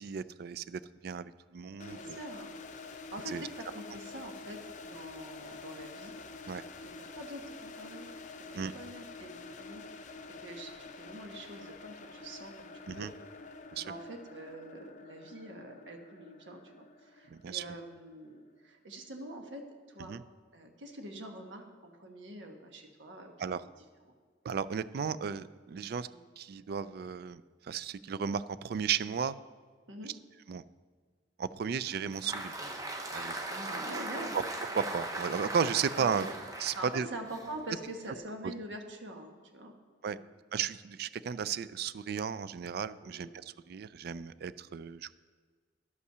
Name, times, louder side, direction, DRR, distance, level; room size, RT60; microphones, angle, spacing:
voice 1, 0.0-2.2 3.3-3.4 6.5-6.6 8.6-8.7 12.9-13.1 13.7-13.9 17.3-17.6 20.1-20.2 23.4-23.6 24.4-26.1 26.4-29.4 30.5-30.6 31.4-32.6 33.1-33.3 34.3-34.4 34.7-36.3 36.6-37.1 38.4-38.5 40.0-40.2 40.5-45.1, right 7 dB, 55° right, 16 dB, 0.3 m, -34 dB
sound 1, 1.8-18.6, left 4 dB, 40° left, 0.6 m, -48 dB
voice 2, 1.9-2.5 2.9-4.6 4.8-6.1 6.8-8.1 8.4-13.1 13.8-19.6 19.9-20.1 20.5-23.3 23.6-23.7 26.0-26.2 29.9-30.1 33.4-34.4 36.0-36.3 36.8-39.7 40.1-40.2 43.0-43.3, right 1 dB, 80° right, 3 dB, 1.3 m, -45 dB
Applause, 31.8-38.2, right 2 dB, 20° right, 0.9 m, -39 dB
11.0 x 5.6 x 6.7 m, 1.5 s
head